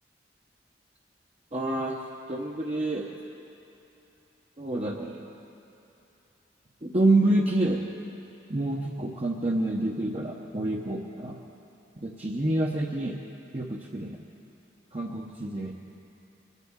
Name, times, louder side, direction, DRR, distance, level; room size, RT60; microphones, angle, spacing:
voice 1, 1.5-2.0 2.3-3.1 4.6-5.3 6.8-7.8 8.5-11.3 12.0-13.2 13.5-14.2 14.9-15.7, right 2 dB, 35° right, -2 dB, 0.8 m, -27 dB
23.0 x 8.3 x 7.2 m, 2.9 s
head